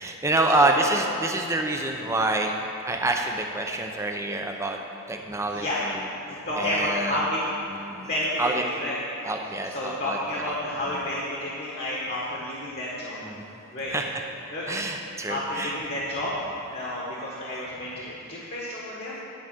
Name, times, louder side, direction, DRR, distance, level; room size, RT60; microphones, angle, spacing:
voice 1, 0.0-2.5 2.9-4.8 5.1-6.0 6.6-7.2 7.7-8.1 8.4-8.6 9.2-10.6 10.9-11.0 13.2-13.4 13.9-14.1 14.7-15.7, right 2 dB, 15° right, 2 dB, 0.6 m, -27 dB
voice 2, 5.5-5.8 6.2-7.4 8.1-9.0 9.7-13.2 13.7-13.9 14.5-14.8 15.3-16.4 16.7-19.2, left 1 dB, 45° left, -6 dB, 1.6 m, -30 dB
10.5 x 4.9 x 7.6 m, 3.0 s
head